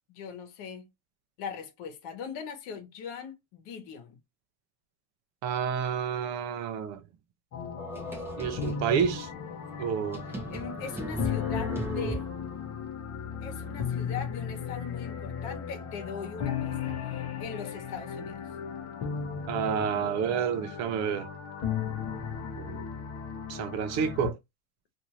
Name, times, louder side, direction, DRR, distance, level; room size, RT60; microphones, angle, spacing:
voice 1, 0.1-0.9 1.4-4.2 10.5-12.3 13.4-18.4, left 6 dB, 55° left, 1.1 m, -40 dB
voice 2, 5.4-7.0 8.4-9.3 9.8-10.2 19.5-21.3 22.6-22.9 23.5-24.4, right 7 dB, 40° right, 0.5 m, -29 dB
sound 1, 7.5-24.3, left 7 dB, 35° left, 0.8 m, -35 dB
sound 2, 7.8-9.2 9.7-9.8 10.1-12.6, right 2 dB, 5° right, 0.8 m, -37 dB
2.6 x 2.5 x 3.0 m
supercardioid pair, 150°, 43 cm